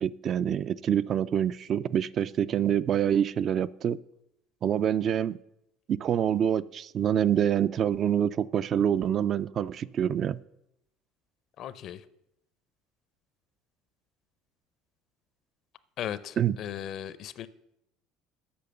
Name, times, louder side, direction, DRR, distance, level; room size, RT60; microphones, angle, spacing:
voice 1, 0.0-4.0 4.6-5.4 5.9-10.4 16.4-16.6, right 9 dB, 45° right, 16 dB, 0.3 m, -26 dB
voice 2, 11.6-12.0 16.0-17.5, left 10 dB, 55° left, 16 dB, 0.6 m, -37 dB
8.6 x 5.9 x 6.9 m, 0.81 s
cardioid pair, 120°, 0 cm